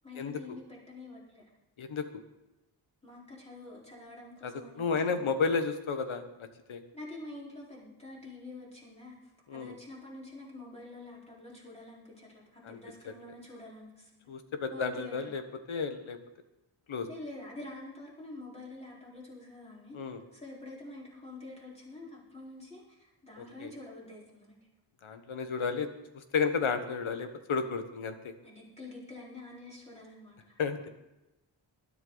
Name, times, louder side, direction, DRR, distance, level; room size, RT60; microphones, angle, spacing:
voice 1, 0.0-1.5 3.0-5.4 6.9-14.3 14.7-15.3 17.1-20.0 20.3-24.6 28.4-30.6, left 2 dB, 15° left, -5 dB, 4.6 m, -47 dB
voice 2, 4.4-6.8 9.5-9.7 12.6-12.8 13.0-13.1 14.3-15.4 15.7-16.2 16.9-17.1 19.9-20.2 23.4-23.7 25.0-25.9 26.1-28.3 30.6-30.9, left 5 dB, 90° left, 8 dB, 1.5 m, -32 dB
20.5 x 11.5 x 4.1 m, 0.99 s
wide cardioid pair, 160°, 47 cm